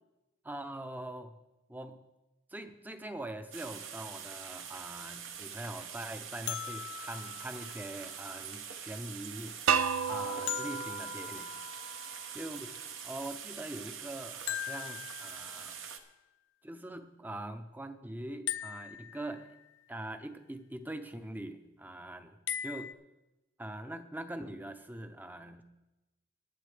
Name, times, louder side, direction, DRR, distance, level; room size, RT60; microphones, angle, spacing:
voice 1, 0.4-1.3 1.7-2.0 2.5-9.6 10.1-11.5 12.3-12.7 13.0-15.8 16.6-19.5 19.9-22.9 23.6-25.6, right 1 dB, 10° right, 8 dB, 0.6 m, -43 dB
sound 1, 3.5-16.0, right 7 dB, 65° right, 0.9 m, -44 dB
sound 2, 6.5-8.4 10.5-12.3 14.5-15.9 18.5-19.8 22.5-22.9, left 10 dB, 60° left, 0.5 m, -40 dB
sound 3, 9.7-12.6, right 6 dB, 85° right, 0.5 m, -33 dB
16.5 x 10.5 x 3.4 m, 1.0 s
head